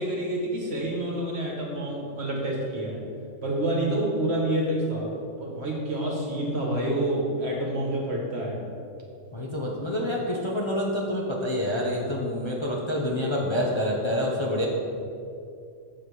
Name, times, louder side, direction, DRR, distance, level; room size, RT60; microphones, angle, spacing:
voice 1, 0.0-3.0 3.4-5.1 5.4-8.6, right 1 dB, 55° right, -1 dB, 1.7 m, -28 dB
voice 2, 9.3-14.7, left 1 dB, 25° left, -3 dB, 0.8 m, -27 dB
7.4 x 7.1 x 4.8 m, 2.5 s
omnidirectional pair, 1.3 m